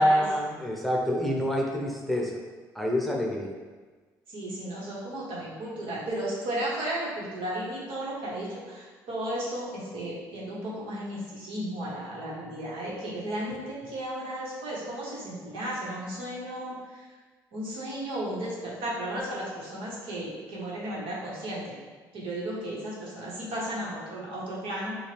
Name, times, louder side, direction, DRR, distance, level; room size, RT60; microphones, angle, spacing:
voice 1, 0.0-2.4 2.7-3.5, equal, ahead, -1 dB, 0.9 m, -26 dB
voice 2, 4.3-17.1 17.5-21.7 22.1-25.0, right 1 dB, 75° right, -5 dB, 1.4 m, -34 dB
6.3 x 2.5 x 3.4 m, 1.4 s
hypercardioid pair, 60°, 9 cm